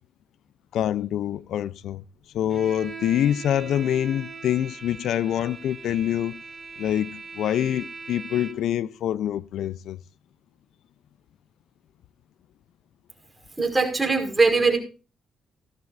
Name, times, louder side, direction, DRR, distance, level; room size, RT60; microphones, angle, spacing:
voice 1, 0.7-2.0 2.3-6.4 6.8-10.0, left 11 dB, 75° left, 0.5 m, -25 dB
Bowed string instrument, 2.5-8.8, right 4 dB, 30° right, 7.1 m, -41 dB
voice 2, 13.6-14.8, right 4 dB, 15° right, 5.3 m, -21 dB
17.0 x 13.0 x 2.6 m
cardioid pair, 90°, 0 cm